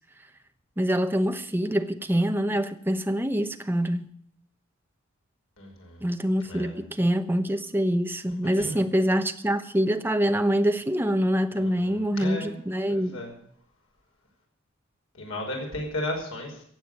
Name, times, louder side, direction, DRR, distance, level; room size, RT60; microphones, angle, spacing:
voice 1, 0.8-4.1 6.0-13.2, equal, 10° right, 1.0 m, -25 dB
voice 2, 5.6-6.0 6.4-6.8 8.6-8.8 11.6-12.6 12.9-13.3 15.1-16.6, left 1 dB, 85° left, 5.3 m, -35 dB
16.5 x 7.8 x 9.1 m
head